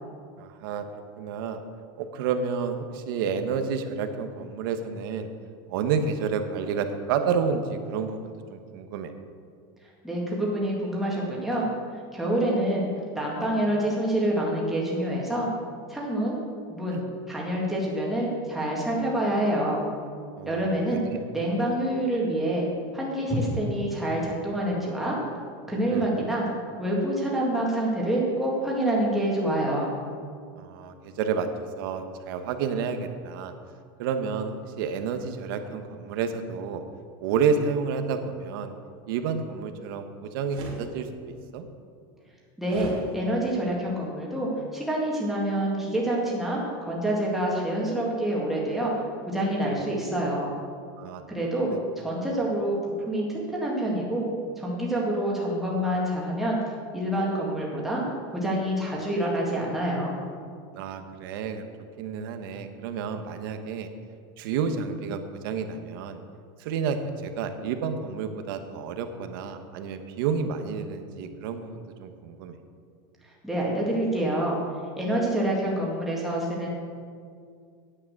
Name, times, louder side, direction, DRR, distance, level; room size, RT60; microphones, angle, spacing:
voice 1, 0.4-0.8 1.2-1.6 2.0-5.3 5.7-9.1 16.9-17.0 20.4-21.2 25.9-26.1 30.6-31.5 31.8-33.5 34.0-36.8 37.2-38.7 39.1-41.1 41.5-41.7 49.6-49.8 51.0-51.2 51.6-51.8 52.2-52.3 60.7-61.7 62.0-63.9 64.4-66.2 66.6-72.6, right 6 dB, 65° right, 7 dB, 1.0 m, -30 dB
voice 2, 10.0-11.7 12.1-12.9 13.1-15.5 15.9-16.4 16.7-19.8 20.5-21.0 21.3-22.7 22.9-25.2 25.7-26.4 26.8-29.9 42.6-48.9 49.3-50.5 51.3-51.7 52.0-52.8 53.1-54.3 54.6-56.6 56.9-58.0 58.3-60.2 73.4-74.6 75.0-76.7, right 1 dB, ahead, -4 dB, 1.9 m, -27 dB
sound 1, 40.5-40.8 42.7-43.0, right 2 dB, 45° right, 2.5 m, -38 dB
9.9 x 8.7 x 6.5 m, 2.2 s
supercardioid pair, 175°, 12 cm